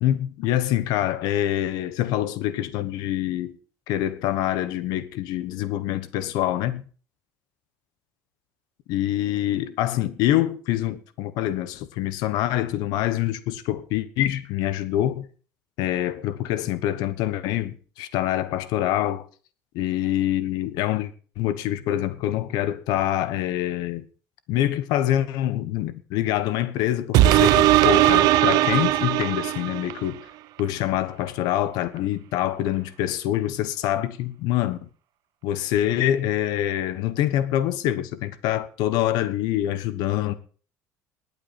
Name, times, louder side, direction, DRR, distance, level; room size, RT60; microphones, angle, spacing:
voice 1, 0.0-3.6 3.9-6.8 8.9-15.3 15.8-19.2 19.7-21.1 21.4-24.1 24.5-30.2 30.6-34.9 35.4-40.3, left 13 dB, 65° left, 1.2 m, -25 dB
sound 1, 27.1-30.1 30.6-30.7, right 15 dB, 60° right, 0.7 m, -18 dB
20.0 x 8.8 x 4.3 m
cardioid pair, 160°, 7 cm